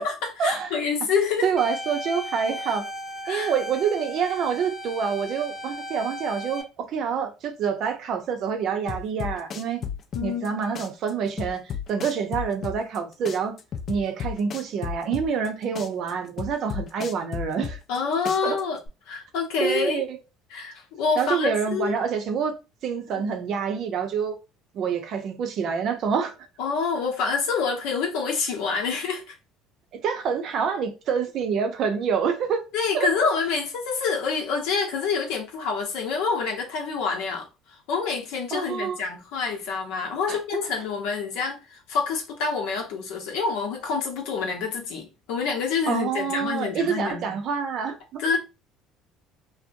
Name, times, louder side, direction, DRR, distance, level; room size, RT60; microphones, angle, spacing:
voice 1, 0.0-1.5 3.2-3.5 10.1-10.6 17.9-18.8 19.1-20.0 20.5-22.0 23.1-23.3 26.6-29.4 32.7-37.5 37.9-47.4 48.2-48.4, left 5 dB, 80° left, 0.8 m, -27 dB
voice 2, 1.4-2.8 3.3-9.8 10.2-11.6 11.9-13.6 13.9-17.8 18.4-18.6 19.6-20.2 21.2-22.5 22.8-24.4 24.7-26.3 30.0-32.6 32.9-33.1 38.5-39.0 40.3-40.4 45.9-48.2, right 6 dB, 55° right, 0.5 m, -27 dB
sound 1, 1.6-6.6, left 1 dB, 20° left, 0.9 m, -36 dB
sound 2, 8.9-10.5 10.7-13.0 13.2-15.5 15.7-18.0 18.2-18.9, left 7 dB, 45° left, 0.4 m, -33 dB
2.6 x 2.1 x 2.5 m
supercardioid pair, 100°, 0 cm